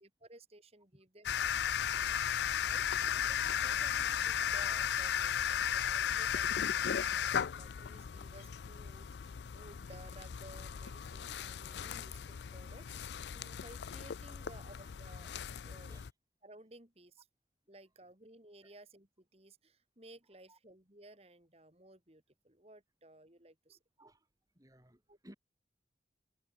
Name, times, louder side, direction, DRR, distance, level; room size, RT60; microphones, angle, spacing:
voice 1, 0.0-1.5 1.9-15.3 15.7-15.9 16.4-17.3 17.7-23.8 25.1-25.2, right 1 dB, 35° right, 3.5 m, -57 dB
sound 1, 1.2-16.1, left 8 dB, 80° left, 0.4 m, -36 dB
voice 2, 23.7-24.3 24.5-25.3, right 1 dB, 20° right, 3.3 m, -60 dB
head